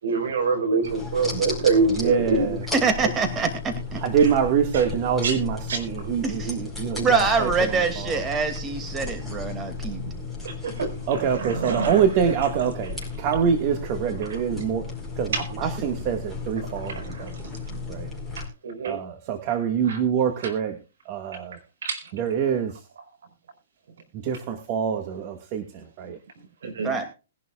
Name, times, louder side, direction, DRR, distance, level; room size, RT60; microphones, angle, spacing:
voice 1, 0.0-2.6 4.2-4.3 4.7-4.8 5.2-5.4 5.7-5.8 10.0-10.1 10.4-10.9 11.3-12.0 14.2-14.4 15.3-15.5 16.6-17.8 18.4-19.0 19.8-20.0 20.4-20.5 21.8-22.1 26.3-26.9, right 4 dB, 75° right, 8 dB, 5.0 m, -26 dB
sound 1, 0.8-18.5, left 3 dB, ahead, 4.8 m, -35 dB
voice 2, 1.9-2.6 4.0-7.5 8.0-8.1 11.1-14.9 15.2-17.3 17.9-18.1 18.9-20.8 21.1-21.6 22.1-22.7 24.2-26.2, right 7 dB, 40° right, 5 dB, 1.9 m, -25 dB
voice 3, 2.7-4.0 6.2-6.6 7.0-10.0 26.8-27.1, right 4 dB, 20° right, 6 dB, 2.5 m, -25 dB
20.5 x 11.5 x 2.5 m, 0.32 s
hypercardioid pair, 140°, 0 cm